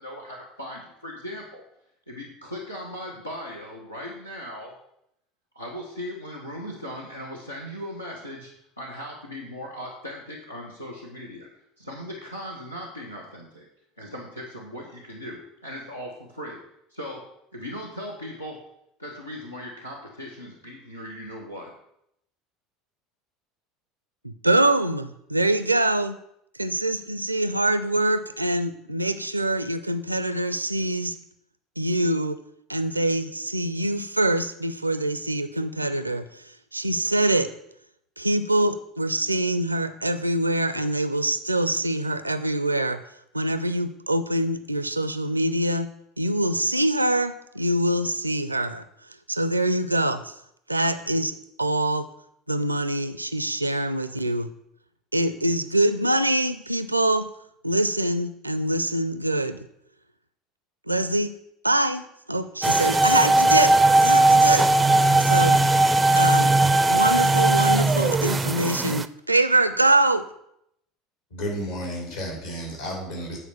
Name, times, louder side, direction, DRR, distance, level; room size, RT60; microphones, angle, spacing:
voice 1, 0.0-1.6 2.1-4.8 5.5-11.5 11.8-13.7 14.0-16.6 16.9-18.6 19.0-21.7, equal, 85° left, -2 dB, 1.2 m, -38 dB
voice 2, 24.2-26.2 26.6-31.1 31.8-32.4 32.7-36.4 36.7-37.5 38.2-43.0 43.3-45.9 46.2-48.8 49.3-50.3 50.7-52.1 52.5-54.5 55.1-57.3 57.6-59.6 60.9-61.3 61.6-63.7 64.0-64.7 65.2-65.6 66.1-66.5 66.9-70.2, right 1 dB, 85° right, 13 dB, 0.5 m, -24 dB
sound 1, 62.6-69.0, right 2 dB, 20° right, 0.4 m, -18 dB
voice 3, 71.3-73.4, equal, 65° left, -1 dB, 3.8 m, -32 dB
8.9 x 4.5 x 7.0 m, 0.76 s
figure-of-eight pair, 70°, 0 cm